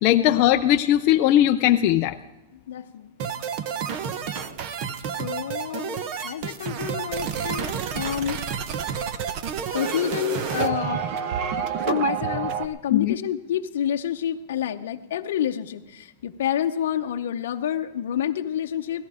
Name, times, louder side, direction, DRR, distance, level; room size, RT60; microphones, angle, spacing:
voice 1, 0.0-2.2 12.9-13.1, left 12 dB, 30° left, 5 dB, 0.4 m, -19 dB
voice 2, 2.5-3.1 3.4-3.5 5.2-8.4 9.7-11.2 11.7-19.1, left 10 dB, 65° left, 4 dB, 0.7 m, -29 dB
sound 1, 3.2-12.7, right 7 dB, 35° right, 0.7 m, -29 dB
17.0 x 14.0 x 4.9 m, 1.0 s
supercardioid pair, 175°, 0 cm